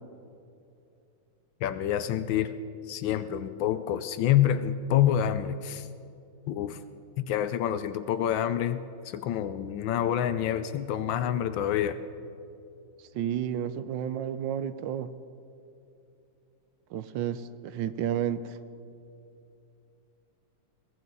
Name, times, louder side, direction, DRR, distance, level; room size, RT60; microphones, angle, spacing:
voice 1, 1.6-2.5 2.9-5.9 6.5-6.8 7.2-8.8 9.0-12.0, left 10 dB, 75° left, 12 dB, 1.3 m, -27 dB
voice 2, 13.1-15.1 16.9-18.6, right 9 dB, 75° right, 13 dB, 1.3 m, -31 dB
22.0 x 16.0 x 4.0 m, 2.6 s
omnidirectional pair, 2.2 m